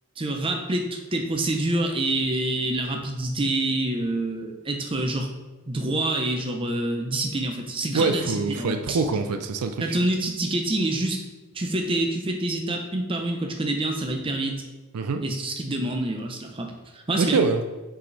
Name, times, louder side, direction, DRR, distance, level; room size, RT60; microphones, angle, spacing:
voice 1, 0.2-5.3 5.7-9.0 9.8-11.2 11.5-14.6 15.2-17.4, right 2 dB, 25° right, 3 dB, 0.6 m, -27 dB
voice 2, 7.9-10.0 14.9-15.2 17.2-17.7, right 4 dB, 90° right, 7 dB, 0.4 m, -24 dB
6.0 x 4.9 x 4.0 m, 1.2 s
head